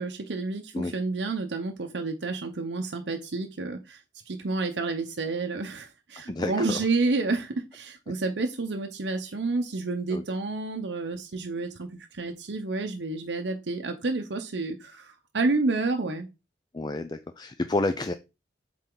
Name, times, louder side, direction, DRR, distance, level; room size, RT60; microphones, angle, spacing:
voice 1, 0.0-16.3, right 3 dB, 85° right, 0.8 m, -30 dB
voice 2, 6.2-6.8 10.1-10.2 16.7-18.1, left 2 dB, 25° left, 0.4 m, -30 dB
7.7 x 4.2 x 3.8 m
head